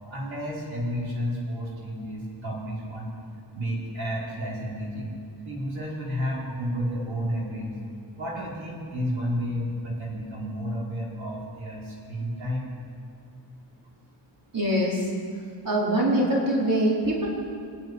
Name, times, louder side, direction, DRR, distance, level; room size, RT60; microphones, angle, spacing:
voice 1, 0.0-3.1 3.5-5.2 5.4-7.7 8.2-12.7, equal, 80° right, -4 dB, 4.7 m, -31 dB
voice 2, 14.5-15.1 15.6-17.3, right 1 dB, 45° right, -5 dB, 4.8 m, -23 dB
25.5 x 10.5 x 9.8 m, 2.4 s
wide cardioid pair, 125°, 46 cm